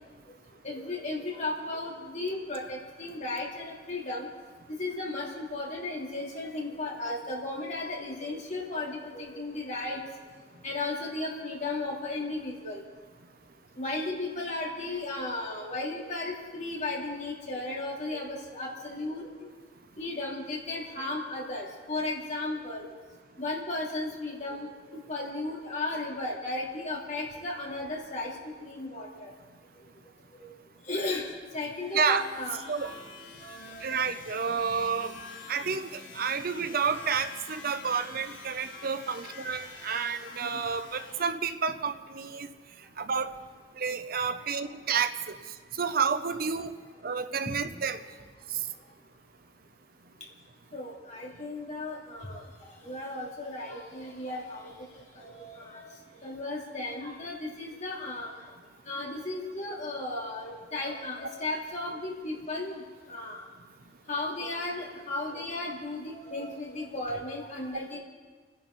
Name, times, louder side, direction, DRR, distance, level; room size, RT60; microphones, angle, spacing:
voice 1, 0.6-4.3 4.8-10.0 10.6-12.8 13.8-19.3 20.0-22.9 23.4-28.3 28.6-29.3 30.4-30.5 30.9-31.2 31.5-32.6 33.4-34.0 39.1-39.2 40.5-40.6 50.7-52.4 52.8-54.7 55.1-55.9 56.2-58.3 58.9-62.8 63.1-63.4 64.1-68.0, left 2 dB, 40° left, -3 dB, 3.3 m, -35 dB
sound 1, 31.7-41.3, left 3 dB, 90° left, 3.3 m, -46 dB
voice 2, 33.8-35.1 35.5-42.5 43.0-43.3 43.8-45.3 45.7-46.7 47.0-48.0 48.5-48.6, right 6 dB, 55° right, 10 dB, 0.7 m, -30 dB
30.0 x 11.0 x 4.1 m, 1.4 s
head